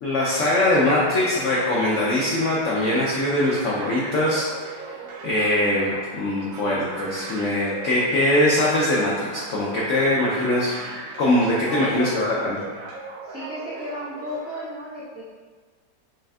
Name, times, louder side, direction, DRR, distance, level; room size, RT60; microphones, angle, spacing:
voice 1, 0.0-4.8 5.2-10.8 11.2-12.6, left 1 dB, 75° left, -5 dB, 0.6 m, -22 dB
sound 1, 0.7-14.6, right 4 dB, 75° right, 0.8 m, -38 dB
voice 2, 11.7-12.2 13.2-15.2, left 1 dB, 20° right, -10 dB, 0.3 m, -33 dB
5.5 x 2.6 x 2.3 m, 1.5 s
omnidirectional pair, 1.9 m